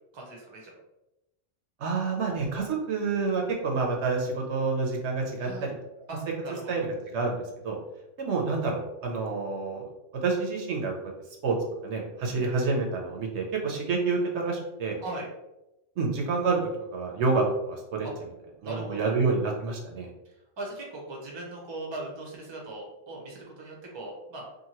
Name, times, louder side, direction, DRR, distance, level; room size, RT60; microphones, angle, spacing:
voice 1, 0.1-0.7 5.4-5.7 6.1-6.2 6.4-6.7 12.2-12.5 15.0-15.3 18.0-18.1 18.6-19.2 20.2-24.4, right 2 dB, 30° right, -1 dB, 0.6 m, -39 dB
voice 2, 1.8-5.7 6.7-6.9 7.1-7.8 8.2-9.9 10.1-10.9 11.4-11.6 11.8-15.0 16.0-16.6 16.9-18.1 18.6-20.1, right 4 dB, 70° right, 0 dB, 0.9 m, -28 dB
2.8 x 2.5 x 2.8 m, 0.93 s
omnidirectional pair, 1.2 m